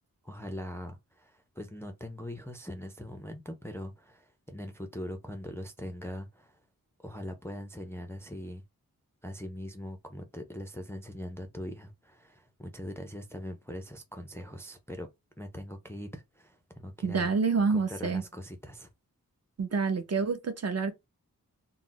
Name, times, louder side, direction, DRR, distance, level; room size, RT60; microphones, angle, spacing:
voice 1, 0.2-6.6 7.0-8.6 9.2-15.1 15.4-17.3 17.7-18.9, left 1 dB, 5° left, 0.4 m, -41 dB
voice 2, 17.0-18.2 19.6-20.9, right 5 dB, 45° right, 0.6 m, -27 dB
2.3 x 2.0 x 3.7 m
wide cardioid pair, 105°, 35 cm